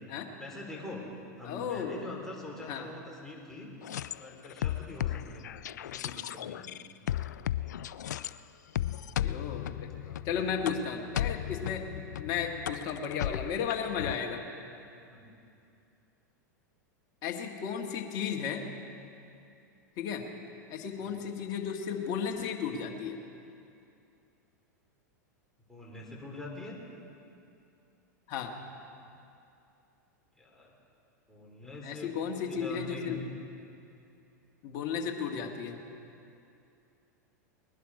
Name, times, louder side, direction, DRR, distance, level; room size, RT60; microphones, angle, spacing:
voice 1, 0.4-1.1 1.4-3.7 4.2-5.5 5.8-6.7 10.0-10.4 15.1-15.3 21.0-21.2 25.7-26.8 30.4-30.7 31.3-33.3, left 2 dB, 5° left, -3 dB, 3.5 m, -44 dB
voice 2, 1.4-2.0 2.6-2.9 9.2-9.9 10.2-11.8 12.2-14.4 17.2-18.6 20.0-20.3 20.7-23.2 28.3-28.5 31.8-33.2 34.6-35.8, left 7 dB, 50° left, 2 dB, 1.7 m, -34 dB
sound 1, 3.8-8.3 8.7-14.1, left 11 dB, 75° left, 0.4 m, -35 dB
20.5 x 11.0 x 4.9 m, 2.6 s
hypercardioid pair, 100°, 10 cm